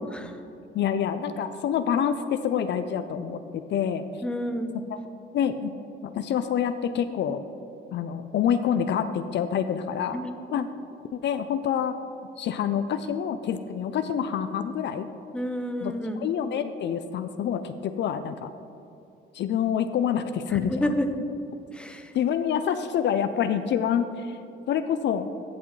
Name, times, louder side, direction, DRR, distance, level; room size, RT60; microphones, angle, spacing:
voice 1, 0.7-4.0 4.9-5.0 5.3-5.7 6.0-7.4 7.9-10.2 10.5-10.7 11.1-12.0 12.4-15.1 15.8-18.5 19.3-20.9 22.1-24.4 24.7-25.3, left 8 dB, 65° left, 10 dB, 0.5 m, -27 dB
voice 2, 4.2-4.8 10.1-10.4 15.3-16.2 20.5-21.1 21.7-22.1, equal, 5° left, 6 dB, 0.8 m, -30 dB
14.5 x 6.0 x 3.1 m, 2.7 s
cardioid pair, 90°, 20 cm